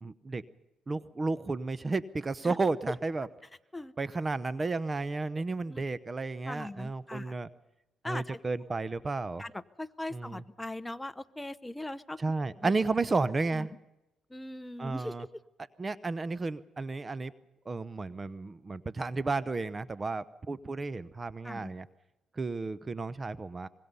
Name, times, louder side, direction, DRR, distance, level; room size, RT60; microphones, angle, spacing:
voice 1, 0.0-0.4 0.9-3.3 4.0-7.5 8.0-9.4 10.1-10.4 12.2-13.8 14.8-15.2 15.8-17.3 17.7-21.9 22.3-23.7, right 3 dB, 30° right, 16 dB, 0.8 m, -32 dB
voice 2, 6.5-7.4 8.0-8.4 9.4-12.2 12.6-12.7 13.5-13.7 14.3-15.4 21.4-21.7, left 1 dB, 10° left, 13 dB, 0.8 m, -40 dB
25.0 x 21.0 x 5.5 m, 0.93 s
cardioid pair, 90°, 0 cm